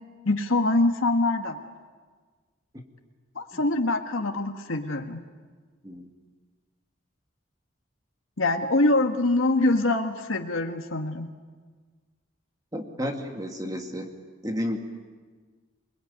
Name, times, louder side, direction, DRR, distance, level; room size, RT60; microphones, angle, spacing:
voice 1, 0.2-1.7 3.3-5.2 8.4-11.3, left 2 dB, 80° left, 4 dB, 1.6 m, -24 dB
voice 2, 12.7-14.1 14.4-14.8, equal, 20° right, 3 dB, 2.2 m, -32 dB
28.0 x 20.5 x 9.7 m, 1.5 s
head